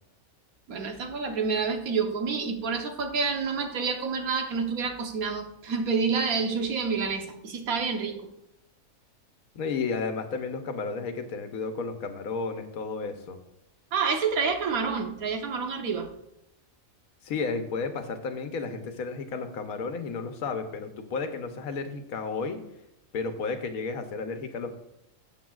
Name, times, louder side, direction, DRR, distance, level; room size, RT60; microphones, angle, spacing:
voice 1, 0.7-8.2 13.9-16.1, right 5 dB, 85° right, 5 dB, 1.5 m, -28 dB
voice 2, 9.5-13.4 17.2-22.6 23.1-24.7, left 4 dB, 85° left, 7 dB, 1.3 m, -32 dB
13.5 x 7.8 x 2.4 m, 0.83 s
omnidirectional pair, 1.5 m